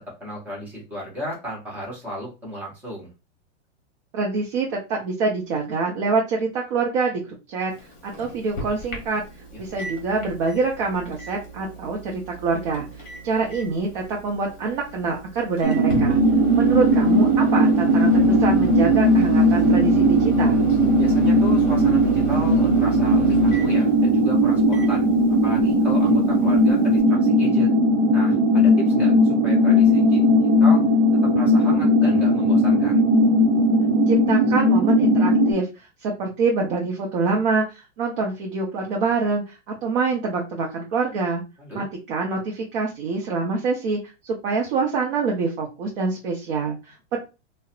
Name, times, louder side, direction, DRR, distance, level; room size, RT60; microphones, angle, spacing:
voice 1, 0.2-3.1 9.7-9.9 21.0-25.1 25.4-27.7 28.1-30.2 30.6-30.8 31.2-33.0 41.6-41.8, equal, 5° right, -5 dB, 0.4 m, -34 dB
voice 2, 4.1-7.2 7.5-7.7 8.0-9.2 9.6-16.2 16.5-20.6 34.1-41.4 41.7-47.2, right 4 dB, 50° right, -1 dB, 0.7 m, -25 dB
Microwave oven, 7.7-27.0, right 3 dB, 25° left, 0.8 m, -34 dB
sound 1, 15.6-35.5, equal, 85° right, 0.8 m, -18 dB
2.5 x 2.1 x 2.3 m, 0.28 s
supercardioid pair, 160°, 36 cm